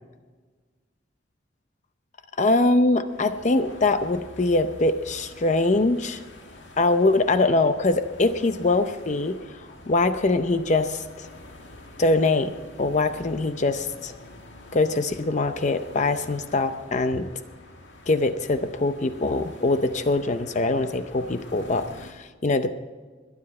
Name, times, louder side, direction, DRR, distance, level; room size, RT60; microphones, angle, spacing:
voice 1, 2.4-6.2 6.8-9.4 9.9-11.3 12.0-12.5 12.8-14.1 14.7-17.3 18.1-22.7, left 2 dB, 40° left, 10 dB, 0.6 m, -23 dB
sound 1, 3.0-22.1, left 2 dB, 75° left, 1.9 m, -46 dB
22.0 x 9.9 x 4.3 m, 1.4 s
head